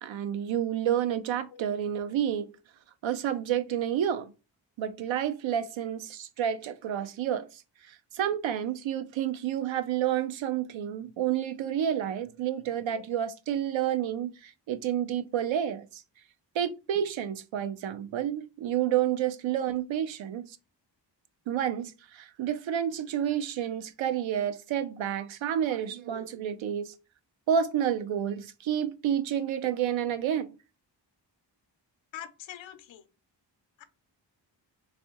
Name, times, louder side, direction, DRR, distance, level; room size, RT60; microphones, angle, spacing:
voice 1, 0.0-2.5 3.0-4.3 4.8-7.6 7.9-16.0 16.5-20.6 21.5-26.9 27.5-30.5, right 9 dB, 90° right, 0.6 m, -30 dB
voice 2, 32.1-33.0 33.8-33.9, left 10 dB, 80° left, 0.6 m, -43 dB
3.3 x 2.6 x 2.8 m
wide cardioid pair, 105°, 45 cm